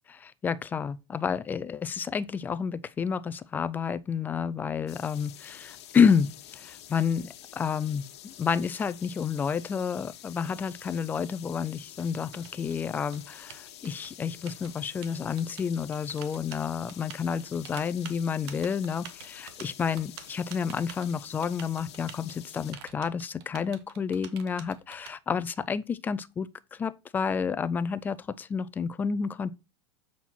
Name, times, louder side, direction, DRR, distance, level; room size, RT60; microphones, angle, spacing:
voice 1, 0.1-7.3 7.6-29.5, left 6 dB, 15° left, 0.3 m, -30 dB
sound 1, 4.9-22.7, left 11 dB, 80° left, 1.1 m, -48 dB
Typing, 10.3-25.1, right 9 dB, 70° right, 1.2 m, -48 dB
7.3 x 4.2 x 4.3 m
supercardioid pair, 150°, 14 cm